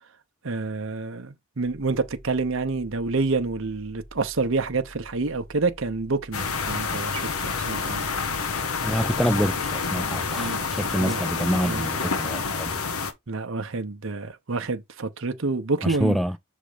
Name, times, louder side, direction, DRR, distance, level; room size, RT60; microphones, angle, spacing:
voice 1, 0.4-8.0 10.4-10.6 11.0-11.2 11.6-12.0 13.3-16.2, right 3 dB, 65° right, 0.8 m, -28 dB
sound 1, 1.6-9.6, equal, 50° left, 2.6 m, -48 dB
sound 2, 6.3-13.1, left 5 dB, 80° left, 1.1 m, -28 dB
voice 2, 8.8-12.8 15.8-16.4, equal, ahead, 0.3 m, -26 dB
6.4 x 3.5 x 5.0 m
head